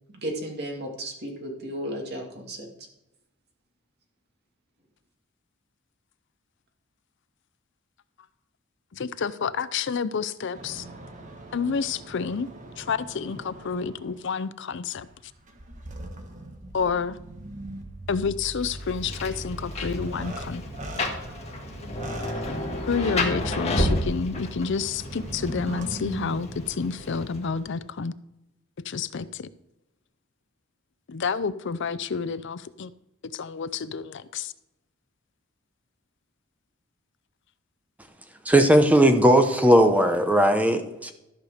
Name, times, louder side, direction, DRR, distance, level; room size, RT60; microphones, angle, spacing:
voice 1, 0.1-2.7, right 1 dB, 55° right, 1 dB, 2.2 m, -34 dB
voice 2, 8.9-10.8 11.5-12.5 12.8-15.1 16.7-17.2 18.1-20.6 22.9-28.1 28.8-29.5 31.1-32.9 33.3-34.5, left 5 dB, 60° left, 15 dB, 0.5 m, -29 dB
sound 1, 10.5-14.3 14.9-26.4, right 1 dB, 35° right, 1.4 m, -40 dB
Rain, 18.6-27.6, left 1 dB, 30° left, 1.8 m, -31 dB
voice 3, 38.5-41.1, right 1 dB, 5° right, 6 dB, 0.9 m, -18 dB
13.5 x 5.0 x 6.5 m, 0.90 s
head